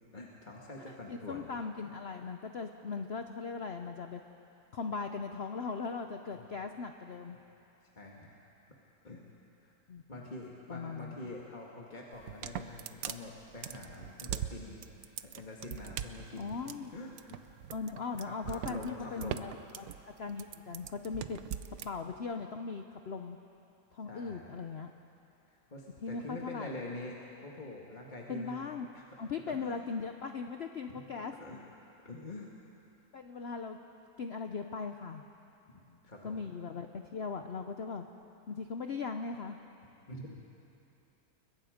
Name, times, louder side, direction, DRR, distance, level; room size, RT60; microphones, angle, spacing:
voice 1, 0.1-1.5 1.8-1.9 6.3-6.5 7.8-8.3 9.0-9.2 9.6-9.7 10.1-14.8 15.2-16.5 16.9-17.4 18.2-19.5 21.3-21.5 24.1-24.5 25.5-29.1 29.4-29.7 30.9-31.0 31.4-31.6 32.0-32.5 35.7-36.4 40.1-40.4, left 2 dB, 25° left, -3 dB, 2.0 m, -45 dB
voice 2, 0.9-4.2 4.7-7.4 9.9-10.0 10.7-11.1 16.4-16.9 17.7-19.9 20.2-21.4 21.8-23.4 23.9-24.9 26.0-26.8 28.3-28.9 29.2-31.3 33.1-33.8 34.2-35.2 36.2-38.1 38.5-39.6, left 5 dB, 50° left, 6 dB, 0.8 m, -39 dB
sound 1, 12.1-21.9, right 10 dB, 65° right, 1.1 m, -41 dB
30.0 x 22.0 x 5.1 m, 2.9 s
omnidirectional pair, 1.8 m